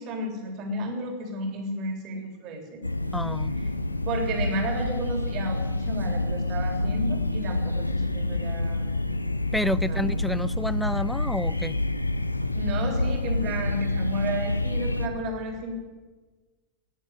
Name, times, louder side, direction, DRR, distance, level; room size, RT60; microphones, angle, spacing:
voice 1, 0.0-2.8 4.0-8.8 9.8-10.1 12.5-15.7, right 1 dB, 40° right, 3 dB, 3.5 m, -32 dB
sound 1, 2.8-15.1, left 2 dB, 85° left, 0.7 m, -28 dB
voice 2, 3.1-3.5 9.5-11.8, left 1 dB, 5° left, 19 dB, 0.4 m, -29 dB
19.0 x 7.4 x 8.2 m, 1.3 s
figure-of-eight pair, 90°, 0 cm